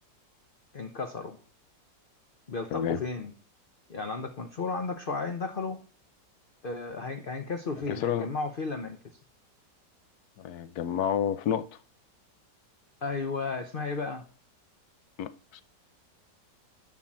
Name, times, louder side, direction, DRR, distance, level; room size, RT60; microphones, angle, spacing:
voice 1, 0.7-1.4 2.5-3.3 3.9-5.8 6.6-9.0 13.0-14.2, left 4 dB, 45° left, 0.8 m, -34 dB
voice 2, 7.9-8.3 10.4-11.7 15.2-15.6, left 9 dB, 65° left, 1.2 m, -29 dB
11.0 x 4.5 x 7.4 m
omnidirectional pair, 1.9 m